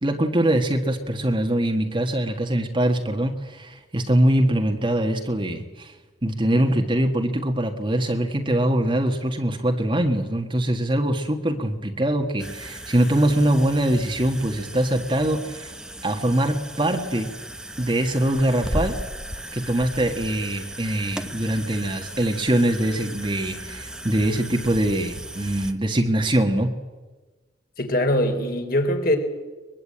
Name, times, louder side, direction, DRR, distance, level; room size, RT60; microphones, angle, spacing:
voice 1, 0.0-5.9 6.2-15.7 16.0-17.3 17.8-19.0 19.5-26.8, right 1 dB, 30° right, 4 dB, 1.6 m, -23 dB
sound 1, 12.4-25.7, right 1 dB, 5° right, 1.0 m, -36 dB
voice 2, 27.8-29.2, left 1 dB, 55° left, 5 dB, 3.9 m, -22 dB
22.5 x 22.0 x 8.7 m, 1.2 s
head